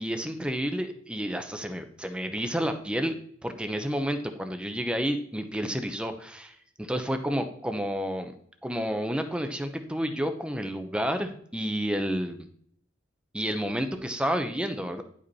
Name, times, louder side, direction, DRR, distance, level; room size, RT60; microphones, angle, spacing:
voice 1, 0.0-3.2 3.4-8.3 8.6-12.5 13.3-15.0, equal, 5° right, 7 dB, 0.7 m, -30 dB
10.5 x 5.3 x 4.1 m, 0.62 s
head